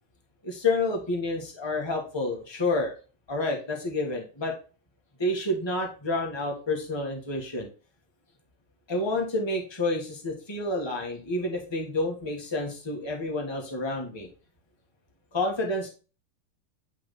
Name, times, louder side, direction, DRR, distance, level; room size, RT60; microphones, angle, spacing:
voice 1, 0.4-2.9 3.3-4.5 5.2-7.7 8.9-14.3 15.3-15.9, left 2 dB, 30° left, 0 dB, 0.4 m, -29 dB
10.5 x 3.5 x 4.3 m, 0.35 s
omnidirectional pair, 3.9 m